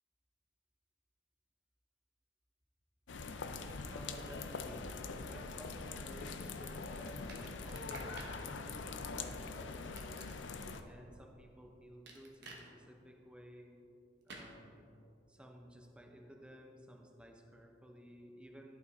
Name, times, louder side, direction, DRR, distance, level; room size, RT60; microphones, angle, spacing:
sound 1, 3.1-10.8, left 4 dB, 65° left, 0.5 m, -43 dB
voice 1, 3.9-4.9 5.3-10.4 10.8-13.8 14.3-15.0 15.3-18.8, equal, 5° right, 2 dB, 0.7 m, -55 dB
sound 2, 7.3-8.4 9.8-10.8 12.1-12.6 14.3-14.5, right 3 dB, 60° right, 1.1 m, -51 dB
11.5 x 5.6 x 4.0 m, 2.7 s
head